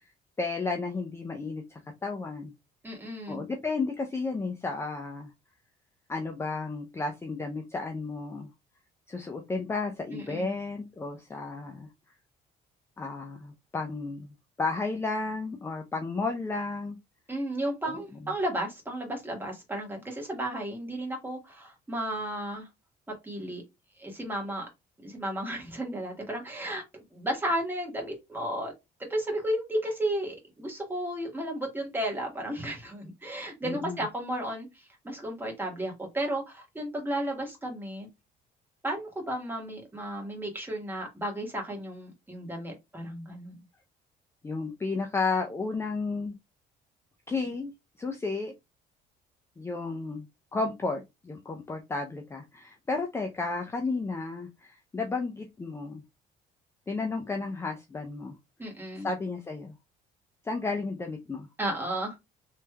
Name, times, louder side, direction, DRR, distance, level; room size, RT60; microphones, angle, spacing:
voice 1, 0.4-2.5 3.3-5.3 6.1-8.5 9.1-11.9 13.0-17.0 17.8-18.0 33.6-34.1 44.4-46.3 47.3-47.7 48.0-48.5 49.6-56.0 56.9-58.3 59.0-59.7 60.4-61.5, left 3 dB, 15° left, 4 dB, 0.4 m, -33 dB
voice 2, 2.8-3.4 10.1-10.5 17.3-22.7 23.2-23.6 24.0-24.7 25.0-28.7 29.1-38.1 38.8-43.6 58.6-59.1 61.6-62.2, right 1 dB, 10° right, 0 dB, 1.5 m, -33 dB
3.2 x 3.2 x 2.2 m, 0.21 s
cardioid pair, 110°, 17 cm